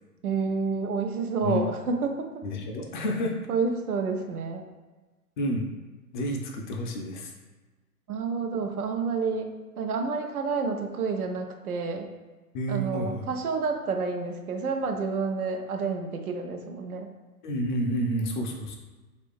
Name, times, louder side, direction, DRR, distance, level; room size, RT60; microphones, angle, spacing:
voice 1, 0.2-2.3 3.5-4.6 8.1-12.1 12.7-17.1, right 4 dB, 75° right, 4 dB, 0.7 m, -29 dB
voice 2, 2.4-3.4 5.4-5.7 6.1-7.3 12.5-13.3 17.4-18.8, equal, 35° left, 1 dB, 0.4 m, -29 dB
3.2 x 2.5 x 3.5 m, 1.2 s
figure-of-eight pair, 110°, 44 cm